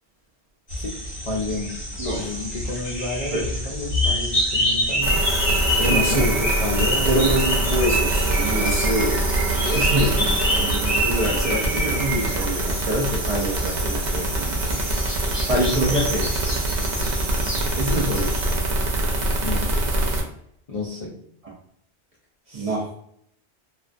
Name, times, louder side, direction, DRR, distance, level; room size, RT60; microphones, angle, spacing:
sound 1, 0.7-18.6, equal, 25° left, 0.8 m, -27 dB
voice 1, 1.2-1.8 2.1-5.2 5.8-7.2 11.5-11.8 15.5-15.6 19.4-19.7 20.7-21.2 22.5-22.7, left 2 dB, 55° left, -4 dB, 0.4 m, -30 dB
voice 2, 2.0-2.4 3.3-3.4 5.8-6.4 7.0-9.1 9.6-14.9 15.5-16.4 17.7-18.5 22.5-22.9, right 1 dB, 50° right, -4 dB, 0.4 m, -26 dB
sound 2, 5.0-20.2, right 2 dB, 90° right, 0.9 m, -24 dB
2.3 x 2.3 x 2.4 m, 0.70 s
omnidirectional pair, 1.1 m